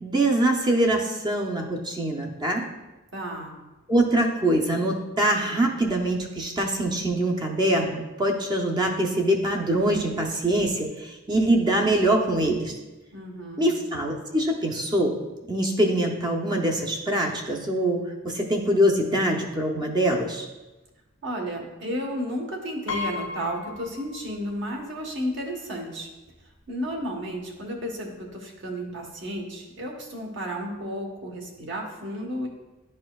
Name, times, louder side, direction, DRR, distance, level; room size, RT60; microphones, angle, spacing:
voice 1, 0.0-2.7 3.9-12.8 13.6-15.2 15.5-20.5, right 1 dB, 20° right, 1 dB, 0.6 m, -24 dB
voice 2, 3.1-3.6 13.1-13.8 21.2-26.1 26.7-32.5, equal, 60° right, 1 dB, 1.2 m, -33 dB
Piano, 22.9-24.7 25.0-25.1 26.3-26.4 26.7-26.9, left 4 dB, 70° left, 0.6 m, -35 dB
10.5 x 4.3 x 2.3 m, 1.1 s
head